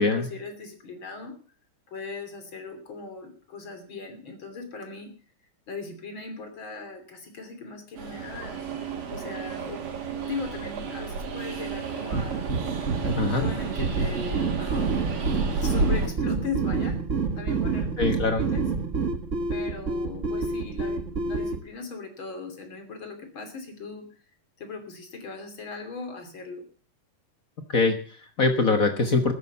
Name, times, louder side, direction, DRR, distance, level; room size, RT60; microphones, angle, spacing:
voice 1, 0.0-1.4 1.9-5.1 5.7-9.8 10.1-12.4 13.0-15.1 15.6-17.0 17.3-18.6 19.5-24.1 24.6-26.6, left 4 dB, 40° left, 6 dB, 3.4 m, -39 dB
Train, 8.0-16.1, right 4 dB, 75° right, 4.3 m, -32 dB
sound 1, 8.3-13.4, right 8 dB, 90° right, 3.1 m, -42 dB
sound 2, 12.1-21.6, right 4 dB, 60° right, 0.8 m, -28 dB
voice 2, 18.0-18.4 27.7-29.3, left 3 dB, 85° left, 6 dB, 0.7 m, -23 dB
13.0 x 10.5 x 6.9 m, 0.41 s
omnidirectional pair, 3.8 m